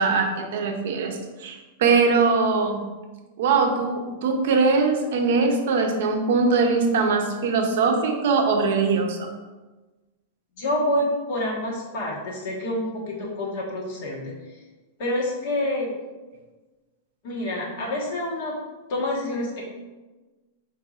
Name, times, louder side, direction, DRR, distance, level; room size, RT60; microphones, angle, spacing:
voice 1, 0.0-2.8 3.4-9.3, right 4 dB, 60° right, 4 dB, 0.6 m, -21 dB
voice 2, 10.6-14.3 15.0-15.9 17.2-18.6 18.9-19.6, left 1 dB, 45° left, -4 dB, 1.2 m, -27 dB
4.6 x 3.9 x 2.4 m, 1.2 s
supercardioid pair, 170°, 0 cm